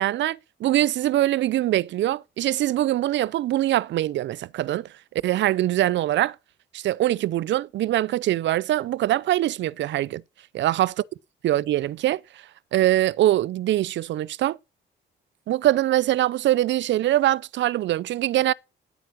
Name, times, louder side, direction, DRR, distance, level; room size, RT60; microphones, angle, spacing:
voice 1, 0.0-4.9 5.2-6.4 6.7-10.2 10.5-10.9 11.4-12.2 12.7-14.6 15.5-18.5, right 14 dB, 65° right, 0.5 m, -23 dB
9.3 x 9.2 x 6.3 m
cardioid pair, 90°, 20 cm